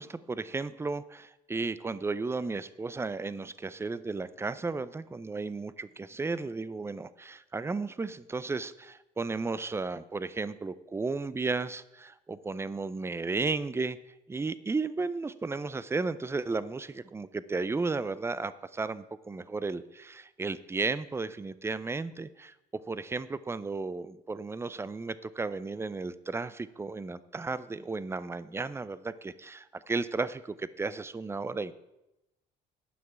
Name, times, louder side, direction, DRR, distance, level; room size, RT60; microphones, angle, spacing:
voice 1, 0.0-14.0 14.3-31.7, right 3 dB, 15° right, 16 dB, 0.4 m, -34 dB
9.5 x 5.8 x 8.5 m, 0.93 s
cardioid pair, 120°, 20 cm